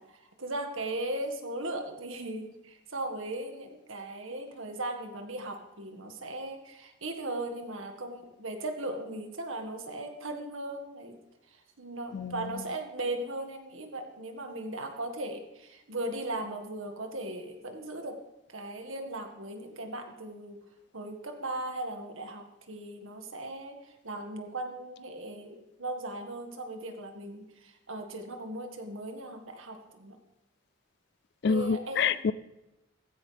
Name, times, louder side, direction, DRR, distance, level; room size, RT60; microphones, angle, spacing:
voice 1, 0.0-11.2 11.5-18.2 18.5-20.6 20.9-30.2 31.5-32.2, right 1 dB, 80° right, 4 dB, 1.9 m, -38 dB
voice 2, 31.4-32.3, left 5 dB, 55° left, 16 dB, 0.4 m, -27 dB
15.5 x 15.5 x 3.5 m, 0.95 s
head